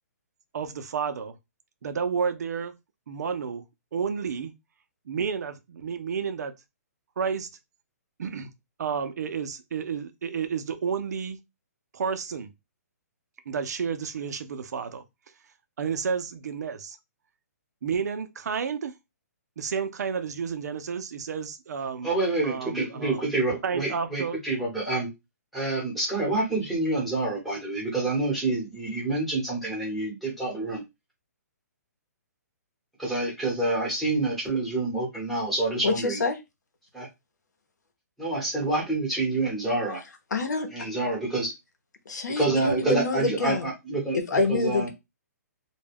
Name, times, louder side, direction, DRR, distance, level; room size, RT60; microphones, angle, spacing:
voice 1, 0.5-1.4 1.8-2.7 3.1-3.6 3.9-4.5 5.1-6.5 7.2-7.5 8.2-8.5 8.8-11.4 11.9-12.5 13.5-15.0 15.8-17.0 17.8-18.9 19.6-22.1 22.4-23.3 23.6-24.4, right 6 dB, 70° right, 0.5 m, -31 dB
voice 2, 22.0-25.1 25.5-30.8 33.0-36.2 36.9-37.1 38.2-40.0 40.7-41.5 42.3-44.9, right 2 dB, ahead, 1.0 m, -27 dB
voice 3, 35.8-36.4 40.3-40.7 42.1-43.7 44.3-44.9, left 3 dB, 90° left, 0.9 m, -26 dB
2.3 x 2.2 x 3.3 m
hypercardioid pair, 160°, 9 cm